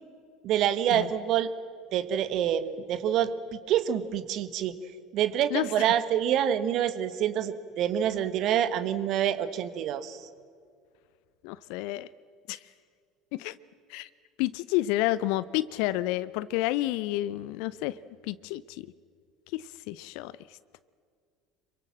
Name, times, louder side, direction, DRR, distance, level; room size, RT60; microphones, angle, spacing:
voice 1, 0.4-1.5 1.9-4.7 5.1-10.2, right 10 dB, 50° right, 13 dB, 1.3 m, -27 dB
voice 2, 11.4-12.1 12.5-12.6 13.3-13.6 13.9-14.1 14.4-18.9 19.5-20.3, left 16 dB, 60° left, 18 dB, 0.6 m, -30 dB
27.0 x 24.0 x 7.5 m, 2.2 s
figure-of-eight pair, 65°, 0 cm